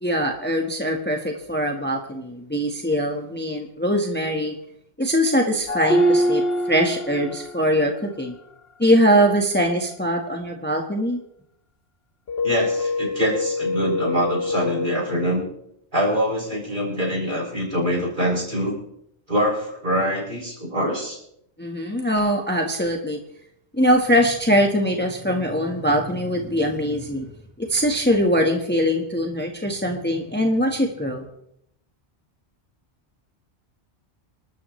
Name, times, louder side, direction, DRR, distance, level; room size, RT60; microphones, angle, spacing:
voice 1, 0.0-4.5 5.0-6.4 6.7-8.3 8.8-11.2 21.6-23.2 23.7-27.2 27.6-31.2, equal, 10° left, 2 dB, 1.4 m, -22 dB
sound 1, 5.7-7.8 12.3-15.3, equal, 60° left, 1.3 m, -24 dB
voice 2, 12.4-15.4 15.9-18.7 19.3-21.2, equal, 45° right, -2 dB, 6.7 m, -24 dB
28.5 x 13.0 x 3.2 m, 0.75 s
omnidirectional pair, 1.2 m